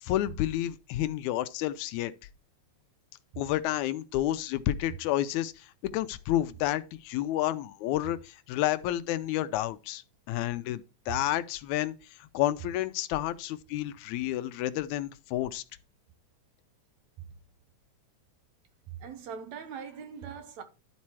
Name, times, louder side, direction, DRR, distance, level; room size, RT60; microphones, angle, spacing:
voice 1, 0.0-2.1 3.4-10.0 10.3-11.9 12.3-15.6, left 14 dB, 80° left, 1.9 m, -30 dB
voice 2, 18.9-20.6, right 7 dB, 70° right, 2.4 m, -41 dB
11.5 x 4.2 x 4.6 m
omnidirectional pair, 3.4 m